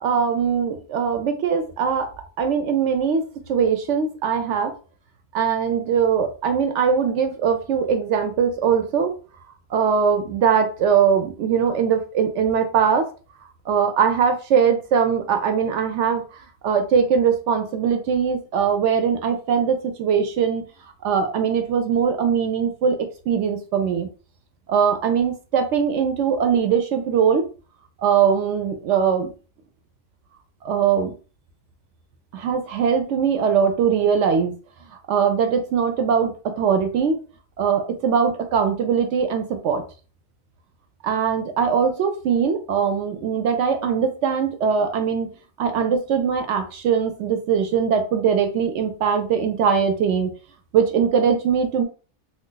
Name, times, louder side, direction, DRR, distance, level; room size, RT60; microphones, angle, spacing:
voice 1, 0.0-2.1 2.4-4.7 5.3-9.1 9.7-13.1 13.7-16.2 16.6-20.7 21.0-24.1 24.7-27.5 28.0-29.3 30.6-31.1 32.3-34.5 35.1-37.2 37.6-39.8 41.0-50.3 50.7-51.8, right 7 dB, 70° right, 6 dB, 0.8 m, -21 dB
2.4 x 2.3 x 3.7 m, 0.36 s
omnidirectional pair, 1.4 m